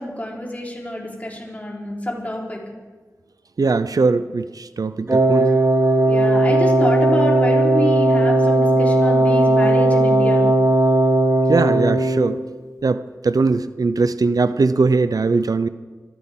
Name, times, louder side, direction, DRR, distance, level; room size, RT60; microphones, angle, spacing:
voice 1, 0.0-2.6 6.1-10.4, left 1 dB, 25° left, -2 dB, 3.9 m, -27 dB
voice 2, 3.6-5.5 11.5-12.4 12.8-15.7, right 4 dB, 90° right, 13 dB, 0.5 m, -20 dB
Wind instrument woodwind instrument, 5.1-12.4, right 1 dB, 40° right, 1.2 m, -16 dB
25.0 x 14.0 x 3.7 m, 1.4 s
wide cardioid pair, 60°, 6 cm